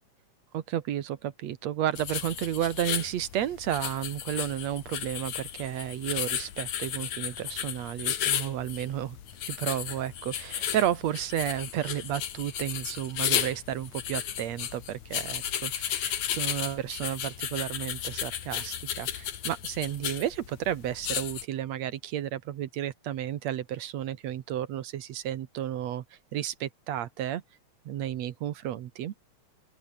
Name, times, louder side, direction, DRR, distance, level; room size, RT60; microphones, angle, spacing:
voice 1, 0.5-9.2 9.5-26.0 26.3-27.4 27.9-29.1, right 11 dB, 70° right, 2.3 m, -32 dB
sound 1, 2.0-21.4, left 10 dB, 80° left, 3.2 m, -34 dB
open air
omnidirectional pair, 3.3 m